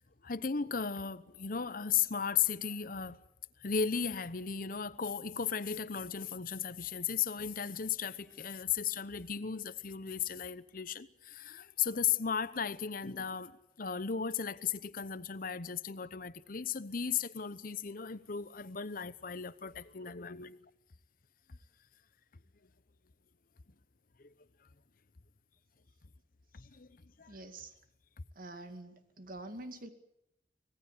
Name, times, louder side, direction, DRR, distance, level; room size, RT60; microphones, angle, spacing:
voice 1, 0.2-3.2 3.6-20.6 24.2-24.3 26.5-26.9 27.2-27.4, left 7 dB, 55° left, 0.9 m, -36 dB
voice 2, 27.3-27.7 28.4-29.9, right 2 dB, 50° right, 2.3 m, -46 dB
25.0 x 18.0 x 8.4 m
head